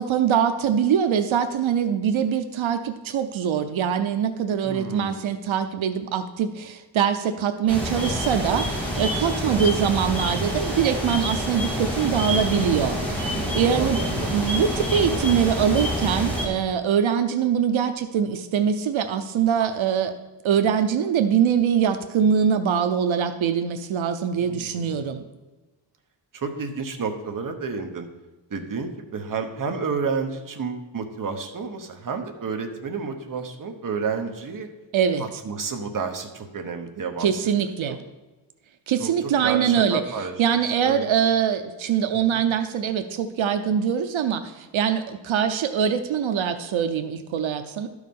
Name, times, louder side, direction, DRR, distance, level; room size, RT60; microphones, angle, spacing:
voice 1, 0.0-14.0 14.3-20.1 20.4-25.2 34.9-35.2 37.2-38.0 38.9-40.0 40.4-47.9, right 8 dB, 85° right, 8 dB, 0.7 m, -23 dB
voice 2, 4.6-5.3 9.5-9.6 12.2-14.4 24.4-25.1 26.3-28.1 28.5-34.7 35.2-38.0 39.0-41.1 42.3-42.4, right 5 dB, 45° right, 4 dB, 1.0 m, -31 dB
sound 1, 7.7-16.5, equal, 5° left, 2.2 m, -27 dB
12.0 x 4.8 x 5.3 m, 1.2 s
wide cardioid pair, 170°, 46 cm